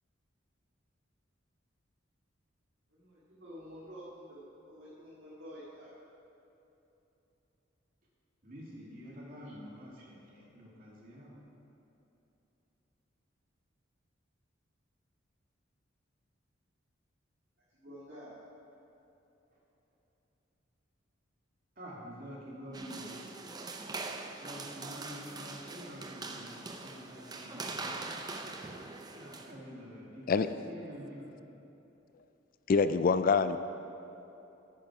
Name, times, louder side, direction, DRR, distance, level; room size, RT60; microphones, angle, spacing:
voice 1, 2.9-5.9 17.7-18.4, equal, 65° right, -9 dB, 2.1 m, -49 dB
voice 2, 8.4-11.4 21.8-23.1 24.4-27.9 29.1-31.3, equal, 45° right, -5 dB, 2.3 m, -47 dB
sound 1, 22.7-29.5, right 3 dB, 20° right, 0.5 m, -42 dB
voice 3, 32.7-33.6, left 5 dB, 45° left, 11 dB, 0.3 m, -25 dB
10.0 x 9.1 x 4.8 m, 3.0 s
head